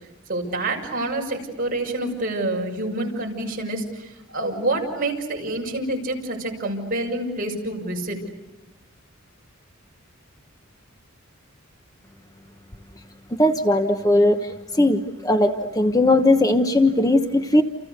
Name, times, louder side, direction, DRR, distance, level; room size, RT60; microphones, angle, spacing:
voice 1, 0.3-8.2, right 2 dB, 40° right, 0 dB, 6.3 m, -27 dB
voice 2, 13.3-14.4 14.8-17.6, left 1 dB, 15° left, 6 dB, 1.2 m, -18 dB
30.0 x 29.0 x 6.7 m, 1.1 s
head